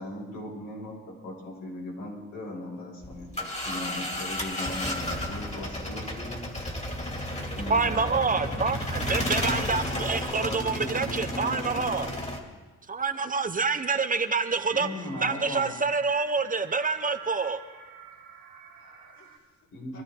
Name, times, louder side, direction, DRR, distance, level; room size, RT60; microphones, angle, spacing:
voice 1, 0.0-3.3 3.6-6.4 7.6-8.9 9.9-12.0 14.7-15.7 19.7-20.0, left 1 dB, 90° left, -3 dB, 6.0 m, -38 dB
sound 1, 3.0-12.4, left 1 dB, 20° left, 2.5 m, -32 dB
voice 2, 7.7-12.1 12.9-14.9 15.2-17.6, right 4 dB, 30° right, 9 dB, 0.8 m, -27 dB
voice 3, 13.1-13.6 18.1-19.7 19.9-20.0, left 3 dB, 65° left, -2 dB, 5.2 m, -59 dB
sound 2, 13.6-19.4, right 8 dB, 85° right, 1.7 m, -47 dB
24.0 x 13.0 x 3.8 m, 1.3 s
cardioid pair, 90°, 30 cm